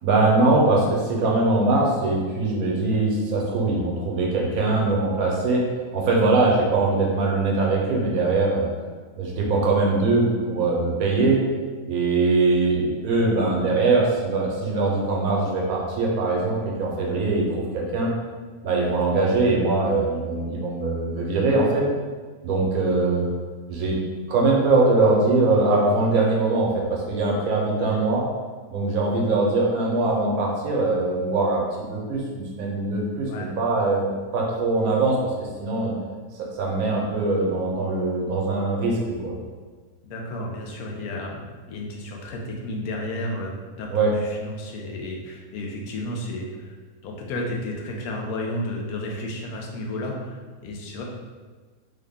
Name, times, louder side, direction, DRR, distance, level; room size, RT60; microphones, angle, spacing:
voice 1, 0.0-5.7 5.9-8.7 9.2-11.4 11.8-17.5 17.7-18.1 18.6-21.8 22.4-23.3 23.7-23.9 24.3-28.2 28.7-31.6 31.9-34.1 34.3-35.9 36.4-39.3 43.9-44.1, right 3 dB, 80° right, -2 dB, 1.2 m, -22 dB
voice 2, 40.0-46.8 47.0-51.0, left 1 dB, 85° left, 0 dB, 1.1 m, -32 dB
3.6 x 2.1 x 3.5 m, 1.5 s
omnidirectional pair, 1.6 m